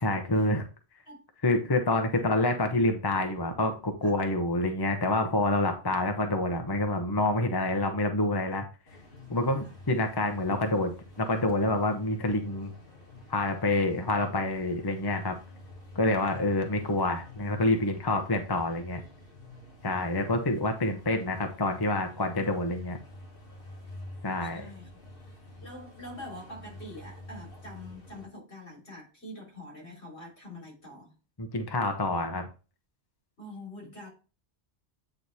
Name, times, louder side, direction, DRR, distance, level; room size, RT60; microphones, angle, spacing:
voice 1, 0.0-0.6 1.4-8.6 9.3-10.9 11.2-12.7 13.3-15.3 15.9-19.0 19.8-23.0 24.2-24.7 31.4-32.5, left 2 dB, 25° left, 0.8 m, -27 dB
sound 1, 8.9-28.3, left 1 dB, 55° left, 2.3 m, -49 dB
voice 2, 24.3-24.9 25.6-31.1 33.4-34.1, left 1 dB, 70° left, 4.0 m, -45 dB
8.8 x 3.2 x 4.1 m
omnidirectional pair, 1.1 m